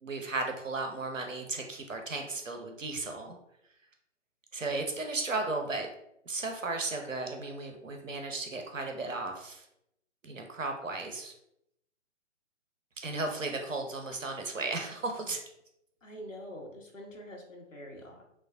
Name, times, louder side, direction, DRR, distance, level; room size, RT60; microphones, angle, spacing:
voice 1, 0.0-3.4 4.5-5.9 6.3-9.6 10.2-11.3 13.0-15.4, right 3 dB, 80° right, 4 dB, 0.8 m, -35 dB
voice 2, 16.0-18.2, equal, 80° left, 0 dB, 1.3 m, -45 dB
6.1 x 2.3 x 2.6 m, 0.79 s
figure-of-eight pair, 135°, 38 cm